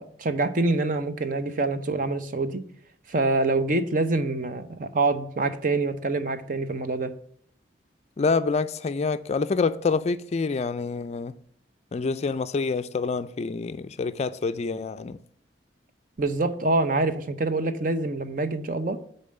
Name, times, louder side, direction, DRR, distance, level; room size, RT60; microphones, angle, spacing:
voice 1, 0.0-2.6 3.1-7.1 16.2-19.0, right 2 dB, 45° right, 0.6 m, -25 dB
voice 2, 8.2-11.3 11.9-15.2, left 4 dB, 35° left, 0.3 m, -27 dB
6.9 x 4.2 x 6.5 m
head